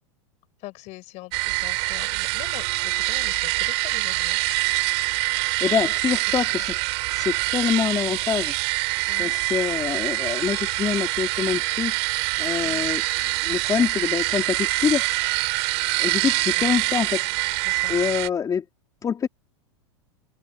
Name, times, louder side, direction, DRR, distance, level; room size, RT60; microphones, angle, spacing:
voice 1, 0.6-4.4 5.6-5.9 6.5-6.6 9.1-9.3 12.6-12.9 16.5-16.8 17.6-18.0, left 21 dB, 50° left, 6.2 m, -42 dB
sound 1, 1.3-18.3, right 28 dB, 60° right, 2.7 m, -25 dB
voice 2, 5.3-6.7 7.1-8.5 9.2-11.9 12.4-13.0 13.4-15.1 16.0-17.3 17.9-18.6 19.0-19.3, left 7 dB, 25° left, 3.5 m, -25 dB
open air
hypercardioid pair, 115°, 15 cm